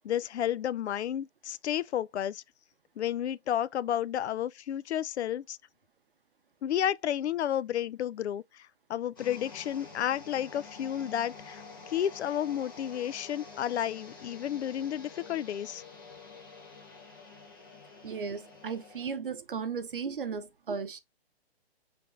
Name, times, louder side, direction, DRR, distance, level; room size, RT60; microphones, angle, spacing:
voice 1, 0.0-2.4 3.0-5.6 6.6-15.8, left 10 dB, 85° left, 0.5 m, -32 dB
sound 1, 9.2-19.2, left 4 dB, 20° left, 0.8 m, -49 dB
voice 2, 18.0-21.0, right 5 dB, 55° right, 0.6 m, -35 dB
5.8 x 3.4 x 2.5 m
hypercardioid pair, 180°, 33 cm